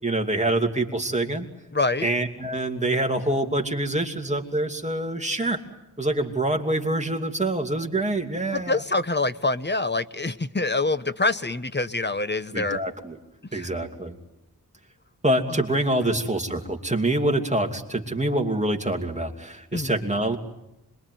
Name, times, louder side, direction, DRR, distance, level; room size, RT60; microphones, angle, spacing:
voice 1, 0.0-1.5 2.0-5.6 6.0-8.8 12.5-13.2 13.5-14.1 15.2-20.4, right 1 dB, 20° right, 3 dB, 2.7 m, -25 dB
voice 2, 1.7-2.1 8.5-12.8 13.5-13.7 15.5-15.6 16.0-16.1 19.7-20.0, left 2 dB, 30° left, 12 dB, 1.2 m, -26 dB
26.5 x 22.5 x 9.4 m, 0.91 s
wide cardioid pair, 65°, 37 cm